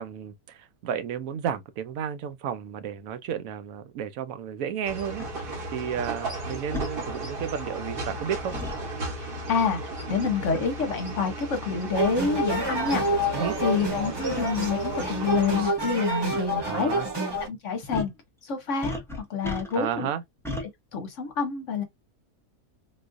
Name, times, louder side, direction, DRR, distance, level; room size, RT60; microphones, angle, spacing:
voice 1, 0.0-8.6 13.3-13.6 16.6-17.1 19.7-20.2, right 8 dB, 70° right, 0.9 m, -32 dB
sound 1, 4.8-15.7, right 1 dB, 45° right, 0.9 m, -35 dB
sound 2, 5.2-5.3 6.7-6.9 8.5-8.8 10.5-10.8 11.6-11.7 12.5-12.6 12.8-13.0 14.3-14.4 15.8-16.0 16.3-16.4 17.9-18.2 18.8-19.9 20.4-20.7, left 2 dB, 5° left, 0.5 m, -34 dB
voice 2, 9.2-9.8 10.1-16.9 17.5-18.1 18.4-20.1 20.9-21.8, left 5 dB, 60° left, 1.0 m, -28 dB
sound 3, 11.9-17.5, right 1 dB, 20° right, 0.9 m, -28 dB
3.9 x 2.4 x 2.5 m
omnidirectional pair, 1.6 m